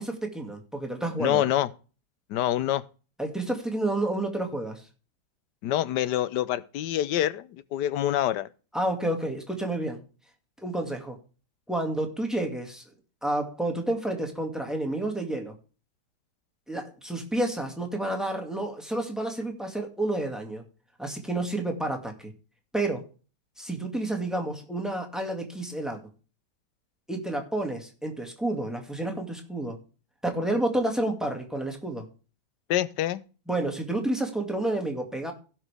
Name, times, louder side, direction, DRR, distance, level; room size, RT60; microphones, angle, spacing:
voice 1, 0.0-1.5 3.2-4.8 8.7-10.0 10.6-11.2 11.7-12.8 13.2-15.5 16.7-20.6 21.0-22.3 22.7-23.1 23.6-26.1 27.1-29.8 30.2-32.1 33.5-35.3, right 1 dB, ahead, 2.0 m, -30 dB
voice 2, 1.2-1.7 2.3-2.8 5.6-8.5 32.7-33.2, left 12 dB, 85° left, 1.3 m, -26 dB
16.5 x 6.1 x 3.4 m
omnidirectional pair, 1.8 m